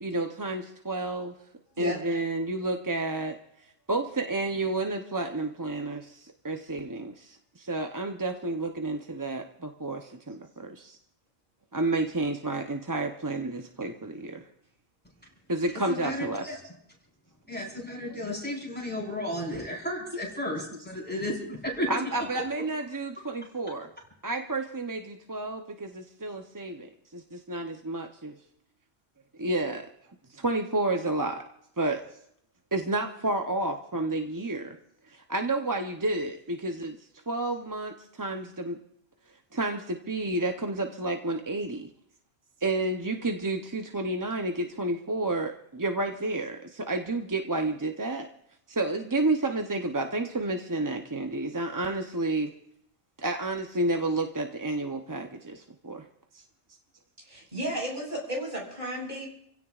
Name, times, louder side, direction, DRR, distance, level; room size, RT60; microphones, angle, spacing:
voice 1, 0.0-1.3 1.8-3.4 3.6-11.0 11.7-14.5 15.5-16.6 21.9-23.9 24.2-28.4 29.4-29.9 30.3-31.4 31.8-32.0 32.7-34.8 35.0-37.0 37.3-38.8 39.5-41.9 42.6-48.3 48.7-52.5 53.2-56.1 56.3-56.4, right 2 dB, 20° right, 4 dB, 0.6 m, -30 dB
voice 2, 15.9-16.6 17.5-21.9, left 1 dB, 10° left, -2 dB, 4.3 m, -33 dB
voice 3, 57.2-59.3, right 1 dB, 45° right, -3 dB, 6.3 m, -33 dB
28.5 x 16.5 x 2.4 m, 0.72 s
omnidirectional pair, 1.1 m